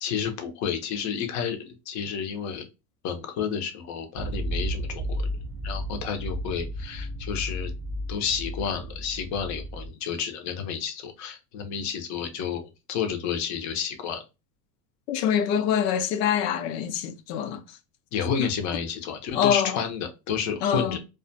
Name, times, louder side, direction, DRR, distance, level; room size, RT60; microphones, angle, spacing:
voice 1, 0.0-2.7 3.0-5.3 5.6-7.7 8.1-14.2 18.1-21.0, left 7 dB, 40° left, 0.6 m, -30 dB
sound 1, 4.2-9.9, equal, 15° right, 0.6 m, -33 dB
voice 2, 15.1-17.6 18.4-18.5 19.3-19.8 20.6-21.0, left 8 dB, 85° left, 0.6 m, -25 dB
2.4 x 2.2 x 2.5 m
supercardioid pair, 120°, 47 cm